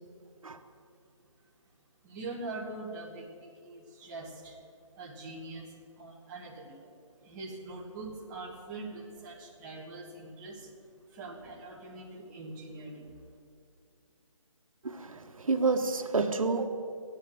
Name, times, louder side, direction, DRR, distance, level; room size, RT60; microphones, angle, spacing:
voice 1, 2.0-4.6 5.0-10.8 11.1-13.1, right 2 dB, 10° right, 1.3 m, -43 dB
voice 2, 14.8-16.7, right 4 dB, 80° right, 1.4 m, -29 dB
14.0 x 10.5 x 8.7 m
hypercardioid pair, 175°, 17 cm